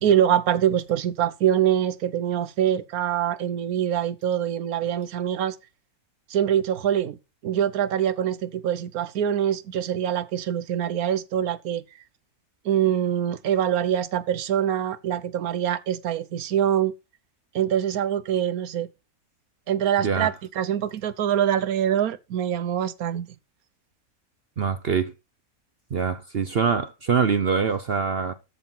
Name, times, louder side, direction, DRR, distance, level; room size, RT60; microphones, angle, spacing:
voice 1, 0.0-5.6 6.3-11.8 12.6-16.9 17.5-18.9 19.7-23.3, right 10 dB, 85° right, 1.3 m, -24 dB
voice 2, 20.0-20.3 24.6-25.1 25.9-28.3, right 6 dB, 50° right, 0.9 m, -24 dB
13.5 x 4.6 x 5.6 m
omnidirectional pair, 1.5 m